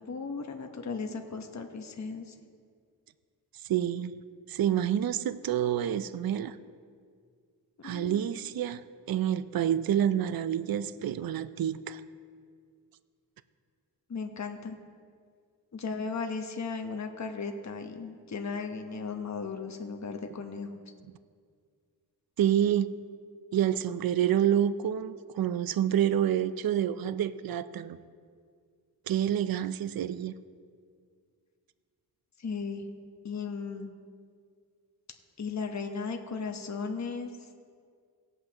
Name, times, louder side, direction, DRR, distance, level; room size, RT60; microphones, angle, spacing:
voice 1, 0.0-2.3 7.8-8.3 14.1-14.8 15.7-20.7 32.4-32.8 33.2-33.9 35.4-37.3, left 5 dB, 45° left, 1.0 m, -36 dB
voice 2, 3.7-4.1 4.5-6.6 7.8-12.0 22.4-23.0 23.5-28.0 29.1-30.3, right 10 dB, 60° right, 0.5 m, -28 dB
18.5 x 8.0 x 2.9 m
cardioid pair, 55°, 39 cm